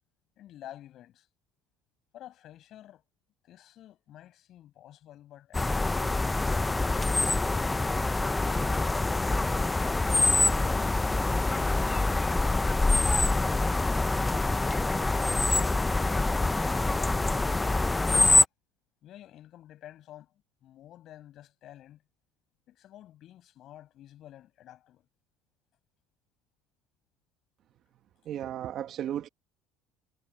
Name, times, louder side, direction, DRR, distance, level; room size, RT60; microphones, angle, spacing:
voice 1, 0.4-1.3 2.1-3.0 3.4-7.3 19.0-22.0 22.7-25.1, left 12 dB, 50° left, 7.9 m, -51 dB
sound 1, 5.5-18.4, left 2 dB, 10° left, 0.5 m, -25 dB
voice 2, 28.2-29.3, right 10 dB, 45° right, 1.5 m, -34 dB
cardioid pair, 135°, 0 cm